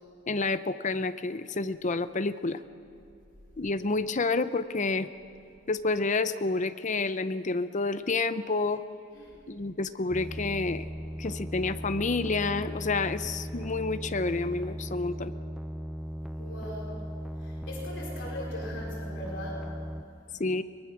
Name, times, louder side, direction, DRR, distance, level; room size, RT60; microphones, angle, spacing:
voice 1, 0.3-2.6 3.6-5.1 5.7-8.8 9.5-10.9 11.2-15.3 20.4-20.6, left 3 dB, 40° left, 12 dB, 0.7 m, -29 dB
sound 1, 10.1-20.0, equal, ahead, 0.6 m, -37 dB
voice 2, 16.4-17.0 17.4-19.7, left 1 dB, 65° left, -3 dB, 4.6 m, -40 dB
23.0 x 20.5 x 6.1 m, 2.6 s
head